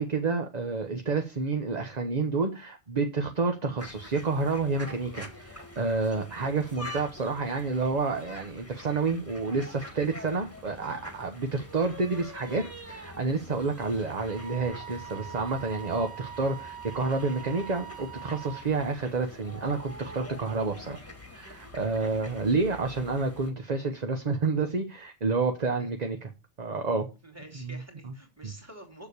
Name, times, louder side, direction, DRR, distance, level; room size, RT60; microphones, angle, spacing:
voice 1, 0.0-21.0 21.3-26.3 26.6-27.1 27.6-27.7 28.4-28.5, right 4 dB, 40° right, 1.0 m, -29 dB
sound 1, 3.8-23.5, left 1 dB, 10° left, 1.7 m, -45 dB
Wind instrument woodwind instrument, 14.3-18.7, right 10 dB, 30° left, 1.5 m, -43 dB
voice 2, 27.2-29.1, right 1 dB, 10° right, 2.7 m, -48 dB
7.3 x 7.0 x 6.6 m
omnidirectional pair, 1.2 m